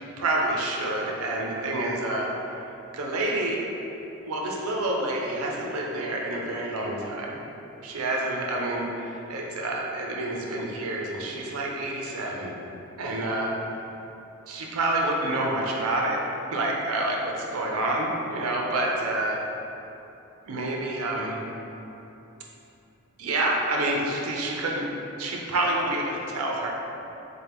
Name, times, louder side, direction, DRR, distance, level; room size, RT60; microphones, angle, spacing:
voice 1, 0.2-2.6 2.9-3.6 4.2-7.4 7.8-12.5 13.0-13.5 14.5-16.2 16.5-19.4 20.5-21.4 23.2-24.9 25.2-26.7, right 2 dB, 85° right, -1 dB, 0.5 m, -28 dB
4.3 x 2.2 x 3.4 m, 2.9 s
head